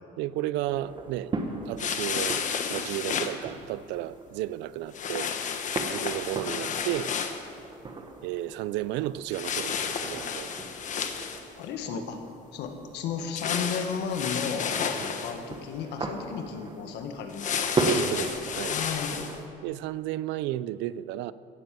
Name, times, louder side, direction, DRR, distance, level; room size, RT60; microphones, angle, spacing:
voice 1, 0.2-1.3 1.7-5.3 5.9-7.1 8.2-10.5 15.0-15.1 17.8-18.8 19.6-21.3, right 14 dB, 80° right, 0.5 m, -33 dB
sound 1, 0.6-19.5, right 3 dB, 25° right, 1.4 m, -38 dB
sound 2, 1.8-3.3 4.9-7.5 9.3-11.6 13.4-15.4 17.3-19.3, left 7 dB, 45° left, 1.2 m, -31 dB
voice 2, 11.6-12.2 12.5-18.2 18.7-19.3, left 6 dB, 70° left, 1.7 m, -34 dB
16.5 x 8.0 x 7.7 m
cardioid pair, 120°, 18 cm